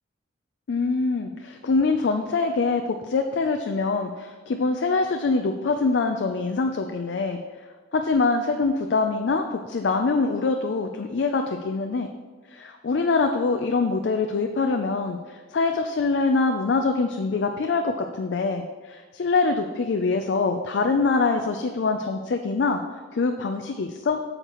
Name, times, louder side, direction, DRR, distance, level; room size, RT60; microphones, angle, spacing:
voice 1, 0.7-7.4 7.9-12.1 12.5-22.8 23.1-24.2, left 4 dB, 65° left, 5 dB, 0.4 m, -24 dB
8.9 x 6.5 x 3.0 m, 1.4 s
head